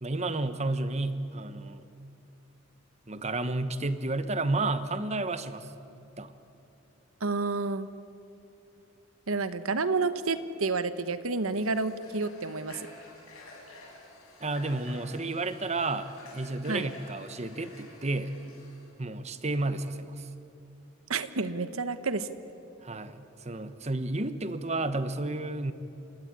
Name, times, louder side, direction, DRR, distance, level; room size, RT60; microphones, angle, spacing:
voice 1, 0.0-1.8 3.1-6.3 14.4-18.3 19.0-20.3 22.8-25.7, right 2 dB, 30° right, 11 dB, 1.1 m, -31 dB
voice 2, 7.2-7.9 9.3-12.9 16.7-16.9 21.1-22.3, right 3 dB, 90° right, 12 dB, 1.2 m, -30 dB
Water / Water tap faucet, 11.4-18.9, left 2 dB, 90° left, 7.1 m, -50 dB
29.0 x 17.0 x 9.8 m, 2.7 s
head